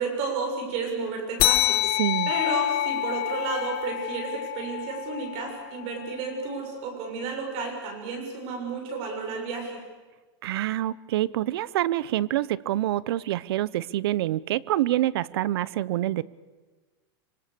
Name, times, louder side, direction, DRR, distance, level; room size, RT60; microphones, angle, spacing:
voice 1, 0.0-1.8 2.3-9.8, right 4 dB, 45° right, 2 dB, 7.2 m, -32 dB
sound 1, 1.4-6.3, left 16 dB, 40° left, 1.4 m, -27 dB
voice 2, 2.0-2.3 10.4-16.2, right 14 dB, 80° right, 20 dB, 0.8 m, -26 dB
26.0 x 26.0 x 6.9 m, 1.3 s
supercardioid pair, 150°, 13 cm